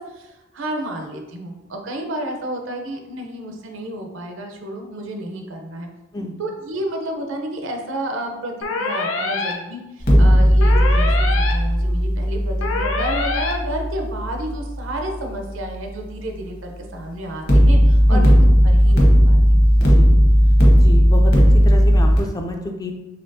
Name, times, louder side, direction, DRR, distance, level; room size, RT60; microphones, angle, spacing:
voice 1, 0.0-5.9 6.4-18.3 18.6-19.7, right 1 dB, 70° right, 3 dB, 0.6 m, -31 dB
sound 1, 8.6-9.5 10.6-11.5 12.6-13.5, left 3 dB, 80° left, 0.6 m, -24 dB
sound 2, 10.0-15.1 17.5-22.2, equal, 50° left, 0.9 m, -15 dB
voice 2, 20.7-22.9, left 1 dB, 20° left, 3 dB, 0.3 m, -28 dB
4.3 x 3.3 x 2.7 m, 0.99 s
head